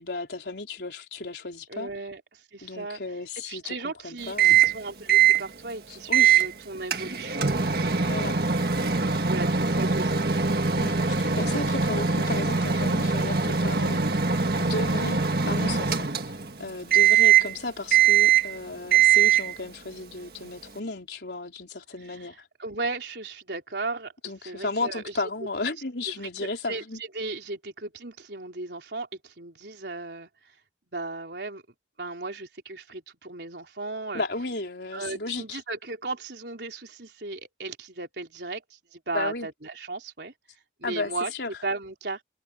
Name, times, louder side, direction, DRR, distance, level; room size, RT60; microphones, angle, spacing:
voice 1, 0.0-1.9 2.6-4.6 5.9-6.5 8.0-8.4 10.8-14.0 14.6-16.3 16.6-22.5 24.2-27.0 34.1-35.6 39.1-39.5 40.8-41.5, left 3 dB, 75° left, 3.8 m, -34 dB
voice 2, 1.7-3.0 3.5-8.1 9.1-10.2 22.1-22.3 22.6-24.1 24.5-25.1 26.7-26.8 27.1-30.3 30.9-31.6 32.0-34.2 34.9-40.3 40.8-41.3 41.6-42.2, right 3 dB, 80° right, 3.7 m, -36 dB
Microwave oven, 4.4-4.8 5.1-5.4 6.1-6.5 6.9-16.5 16.9-17.5 17.9-18.6 18.9-19.5, right 7 dB, 60° right, 1.8 m, -22 dB
head